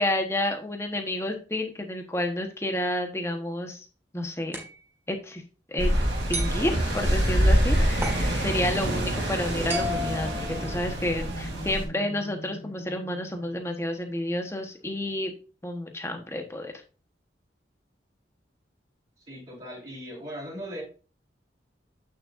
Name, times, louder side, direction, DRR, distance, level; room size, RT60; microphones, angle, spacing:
voice 1, 0.0-3.8 4.1-4.6 5.1-5.4 5.7-5.9 6.3-8.1 8.4-15.3 15.6-16.7, left 1 dB, 15° left, 4 dB, 1.2 m, -30 dB
sound 1, 4.5-4.8 6.3-6.6 8.0-8.3 9.7-11.1, left 1 dB, 15° right, 1.9 m, -33 dB
sound 2, 5.8-11.9, equal, 80° right, 3.0 m, -25 dB
sound 3, 6.7-14.6, left 2 dB, 55° left, 1.2 m, -42 dB
voice 2, 19.3-20.8, equal, 30° right, -9 dB, 3.2 m, -38 dB
8.9 x 6.6 x 2.6 m, 0.35 s
head